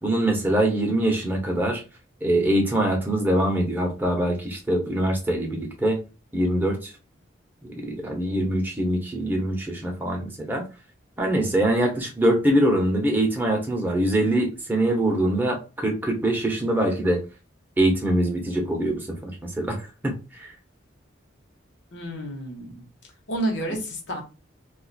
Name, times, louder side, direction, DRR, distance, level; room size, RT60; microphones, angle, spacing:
voice 1, 0.0-1.8 2.2-6.0 6.3-6.9 7.8-10.6 11.2-17.2 17.8-19.8 20.0-20.5, right 1 dB, 10° right, 0 dB, 0.7 m, -23 dB
voice 2, 21.9-22.8 23.3-24.2, right 1 dB, 65° left, 1 dB, 1.0 m, -30 dB
2.6 x 2.4 x 3.9 m, 0.31 s
head